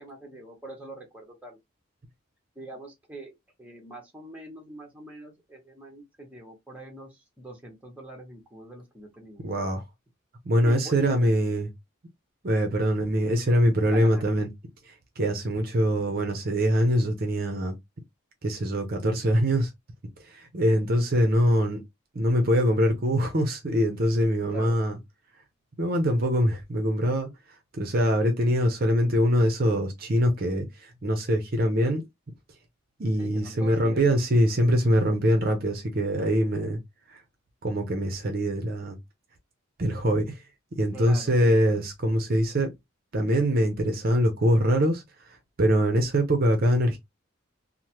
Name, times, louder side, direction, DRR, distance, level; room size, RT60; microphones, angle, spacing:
voice 1, 0.0-1.6 2.5-9.4 10.6-11.3 13.9-14.4 24.5-24.8 33.2-34.2 40.9-41.6, right 1 dB, 5° right, 0.9 m, -43 dB
voice 2, 9.4-9.8 10.4-11.7 12.4-14.5 14.8-17.7 18.4-19.7 20.2-21.8 22.1-25.0 25.8-27.3 27.7-32.0 33.0-36.8 37.1-37.2 37.6-39.0 39.8-40.4 40.8-42.7 43.1-47.0, equal, 45° right, 0.6 m, -23 dB
3.2 x 2.1 x 2.8 m
head